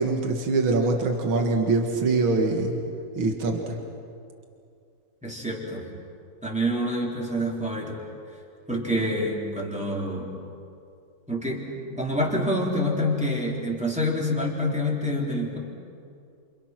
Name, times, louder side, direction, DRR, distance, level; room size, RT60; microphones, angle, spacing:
voice 1, 0.0-2.8 3.2-3.8, right 3 dB, 80° right, 3 dB, 2.7 m, -23 dB
voice 2, 5.2-5.9 6.4-8.0 8.7-10.3 11.3-11.6 11.9-15.6, equal, 5° right, -4 dB, 4.0 m, -27 dB
29.5 x 27.5 x 6.1 m, 2.4 s
omnidirectional pair, 2.2 m